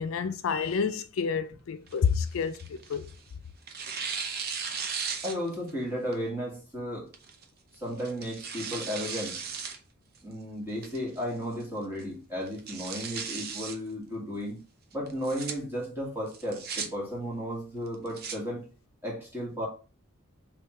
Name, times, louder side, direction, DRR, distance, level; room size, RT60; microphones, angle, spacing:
voice 1, 0.0-3.1, left 6 dB, 65° left, 0.4 m, -29 dB
Tearing, 1.9-3.2 3.7-5.7 6.1-6.2 7.1-7.4 8.0-9.8 10.1-10.2 10.8-11.2 11.6-11.7 12.0-12.1 12.5-13.8 15.1-15.5 16.3-16.9 17.9-18.4, right 6 dB, 45° right, 0.6 m, -36 dB
voice 2, 5.2-7.1 7.8-9.4 10.2-14.6 14.9-18.7 19.0-19.7, equal, 10° right, 1.8 m, -34 dB
3.5 x 3.1 x 4.5 m
head